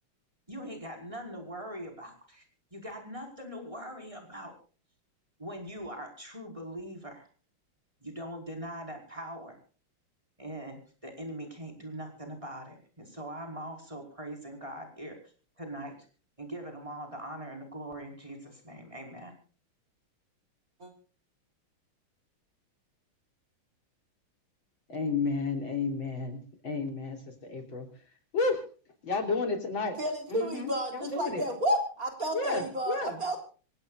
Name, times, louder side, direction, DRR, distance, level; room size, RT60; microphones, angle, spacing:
voice 1, 0.5-2.4 2.7-4.5 5.4-7.3 8.0-9.6 10.4-15.2 15.6-16.1 16.4-19.4, right 1 dB, 15° right, 3 dB, 5.3 m, -41 dB
voice 2, 24.9-27.9 28.3-28.6 29.0-30.0 30.3-31.4 32.3-33.4, left 3 dB, 65° left, 4 dB, 4.3 m, -32 dB
voice 3, 30.0-33.4, equal, 40° right, 4 dB, 4.1 m, -31 dB
27.0 x 16.5 x 2.5 m, 0.39 s
omnidirectional pair, 2.3 m